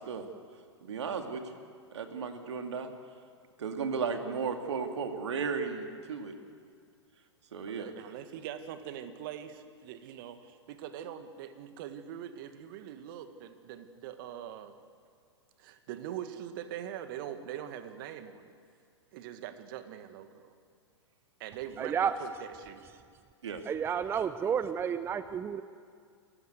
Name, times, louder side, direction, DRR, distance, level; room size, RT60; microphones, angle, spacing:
voice 1, 0.8-1.4 1.9-2.9 3.6-6.3 7.5-7.9 23.4-23.6, right 5 dB, 65° right, 5 dB, 2.3 m, -34 dB
voice 2, 7.7-14.7 15.6-18.5 19.1-20.5 21.4-22.8, right 10 dB, 45° right, 9 dB, 1.6 m, -42 dB
voice 3, 21.8-22.1 23.7-25.6, right 7 dB, 15° right, 13 dB, 0.6 m, -31 dB
27.5 x 15.0 x 8.0 m, 2.2 s
figure-of-eight pair, 110°, 15 cm